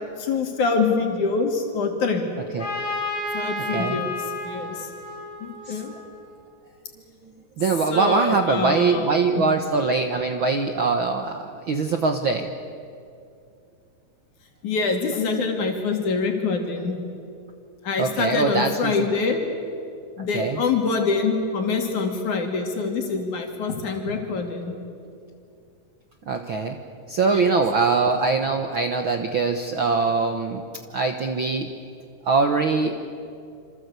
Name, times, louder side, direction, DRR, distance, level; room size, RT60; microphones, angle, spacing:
voice 1, 0.2-2.2 3.3-4.9 5.4-5.9 7.9-9.4 14.6-17.0 17.8-19.4 20.2-24.7 27.3-27.5, left 4 dB, 65° left, 3 dB, 4.2 m, -25 dB
Trumpet, 2.6-6.3, left 2 dB, 40° left, 5.9 m, -31 dB
voice 2, 3.7-4.0 5.7-5.8 7.6-12.5 18.0-18.9 20.2-20.6 26.3-26.8 27.1-30.6 30.9-31.7 32.2-32.9, right 4 dB, 55° right, 5 dB, 1.4 m, -22 dB
27.5 x 26.5 x 8.2 m, 2.4 s
omnidirectional pair, 3.8 m